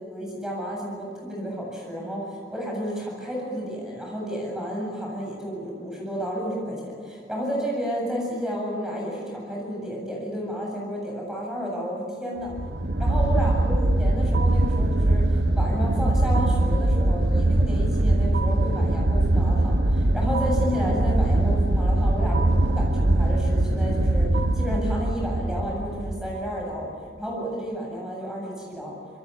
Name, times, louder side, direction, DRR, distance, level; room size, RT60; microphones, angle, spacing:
voice 1, 0.1-12.5 13.0-26.9 27.2-29.0, equal, 5° right, -2 dB, 8.0 m, -31 dB
sound 1, 12.5-26.6, right 1 dB, 80° right, 1.2 m, -22 dB
26.5 x 22.5 x 8.5 m, 2.3 s
head